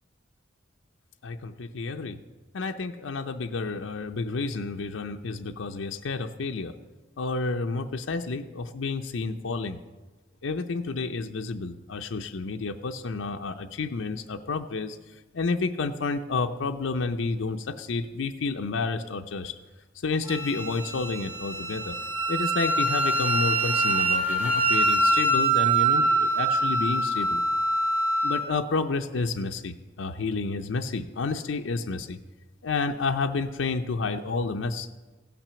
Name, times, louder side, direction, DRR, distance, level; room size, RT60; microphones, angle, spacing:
voice 1, 1.2-2.2 2.5-6.7 7.2-9.8 10.4-15.0 15.3-19.6 20.0-22.0 22.3-27.4 28.2-32.2 32.6-34.9, left 4 dB, 90° left, 6 dB, 0.6 m, -30 dB
Wind instrument woodwind instrument, 20.3-28.5, right 2 dB, 10° right, 1.1 m, -24 dB
16.0 x 6.0 x 6.9 m, 1.2 s
head